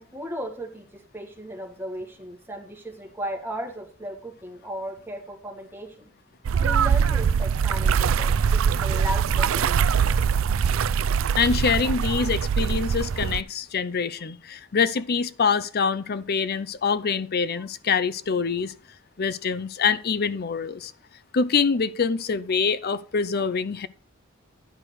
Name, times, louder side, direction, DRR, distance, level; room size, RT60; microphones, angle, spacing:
voice 1, 0.0-6.1 6.6-10.2 11.8-11.9 17.0-17.1, equal, 10° right, 1.9 m, -36 dB
sound 1, 6.4-13.4, right 6 dB, 75° right, 0.4 m, -22 dB
voice 2, 11.4-18.7 19.2-20.9 21.3-23.9, left 5 dB, 50° left, 0.6 m, -25 dB
11.0 x 4.8 x 6.2 m
head